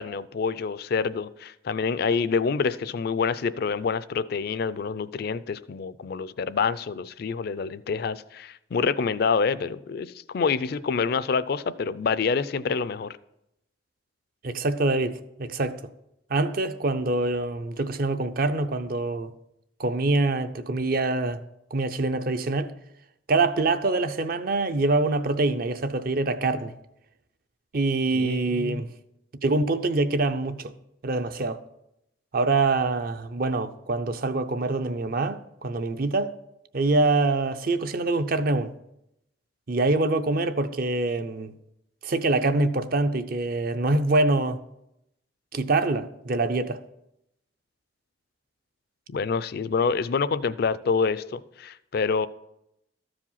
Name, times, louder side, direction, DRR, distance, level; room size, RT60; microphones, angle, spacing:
voice 1, 0.0-13.2 28.1-28.8 49.1-52.3, left 5 dB, 55° left, 0.4 m, -27 dB
voice 2, 14.4-15.8 16.3-19.3 19.8-21.4 21.7-22.7 23.3-26.7 27.7-28.9 29.4-30.7 31.0-31.6 32.3-36.3 36.7-38.7 39.7-41.5 42.0-44.6 45.5-46.8, right 2 dB, 50° right, 0.6 m, -25 dB
13.5 x 4.9 x 5.6 m
head